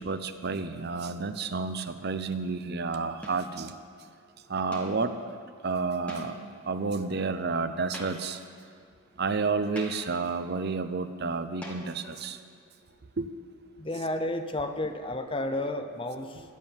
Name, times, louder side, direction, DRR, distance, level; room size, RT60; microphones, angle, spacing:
voice 1, 0.0-3.7 4.5-5.2 5.6-6.4 6.7-8.4 9.2-12.4 13.2-13.3, right 4 dB, 45° right, 10 dB, 0.6 m, -30 dB
sound 1, 1.4-1.8 3.2-3.6 4.7-5.1 6.1-6.6 7.9-8.5 9.8-10.2 11.6-12.3, equal, 5° left, 1.8 m, -44 dB
voice 2, 13.8-16.4, left 1 dB, 25° left, 7 dB, 0.7 m, -32 dB
15.5 x 11.0 x 7.2 m, 2.2 s
head